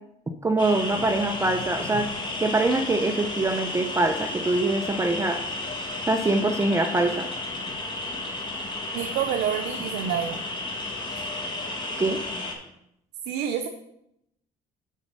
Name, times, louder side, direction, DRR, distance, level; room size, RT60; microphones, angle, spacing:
voice 1, 0.4-2.1 2.4-5.4 6.1-7.3 12.0-12.2, right 2 dB, 15° right, 6 dB, 0.7 m, -24 dB
sound 1, 0.6-12.5, left 2 dB, 25° left, 1.8 m, -33 dB
voice 2, 8.9-10.4 13.3-13.7, right 9 dB, 90° right, 5 dB, 0.7 m, -28 dB
6.5 x 5.2 x 6.5 m, 0.79 s
cardioid pair, 110°, 17 cm